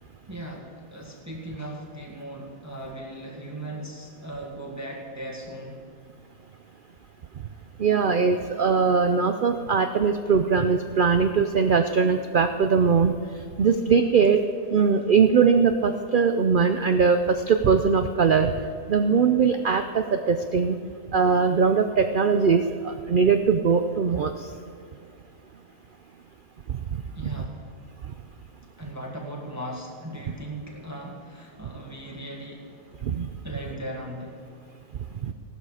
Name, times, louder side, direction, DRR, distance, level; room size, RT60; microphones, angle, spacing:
voice 1, 0.3-5.8 27.1-27.7 28.8-33.0 33.4-34.5, right 1 dB, 10° right, -1 dB, 1.5 m, -38 dB
voice 2, 7.8-13.1 13.6-14.4 14.7-18.5 18.9-20.8 21.1-24.5 26.7-26.8 33.0-33.3 35.2-35.3, right 5 dB, 65° right, 7 dB, 0.5 m, -21 dB
16.5 x 12.5 x 4.9 m, 2.4 s
omnidirectional pair, 1.6 m